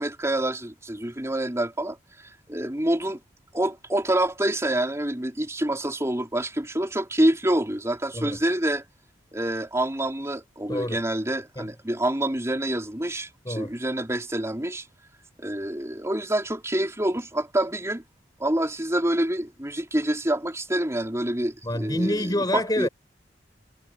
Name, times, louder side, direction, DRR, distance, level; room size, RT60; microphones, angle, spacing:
voice 1, 0.0-2.0 2.5-3.2 3.5-8.8 9.3-14.9 15.4-18.0 18.4-22.9, right 1 dB, 15° right, 3.9 m, -27 dB
voice 2, 10.7-11.0 11.6-11.7 13.5-13.8 21.6-22.9, left 1 dB, 20° left, 7.0 m, -27 dB
head